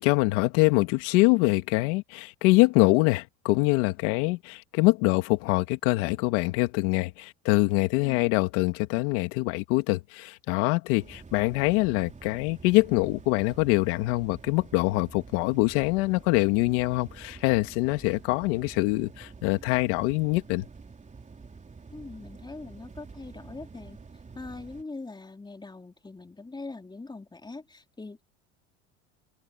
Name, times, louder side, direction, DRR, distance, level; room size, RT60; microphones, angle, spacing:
voice 1, 0.0-20.7, left 22 dB, 80° left, 2.2 m, -24 dB
sound 1, 11.0-24.8, right 4 dB, 20° right, 3.5 m, -47 dB
voice 2, 21.9-24.0 24.3-28.2, left 3 dB, 10° left, 3.4 m, -42 dB
supercardioid pair, 110°, 36 cm